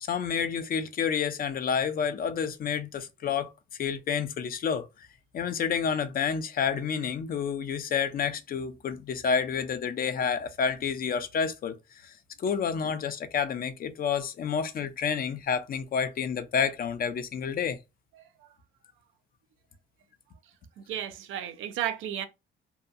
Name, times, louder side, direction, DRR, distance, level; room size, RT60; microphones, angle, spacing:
voice 1, 0.1-3.5 3.8-5.1 5.3-11.8 12.0-12.1 12.4-17.8, left 7 dB, 45° left, 0.5 m, -29 dB
voice 2, 20.8-22.3, right 10 dB, 85° right, 0.4 m, -33 dB
2.7 x 2.3 x 2.5 m
cardioid pair, 90°, 20 cm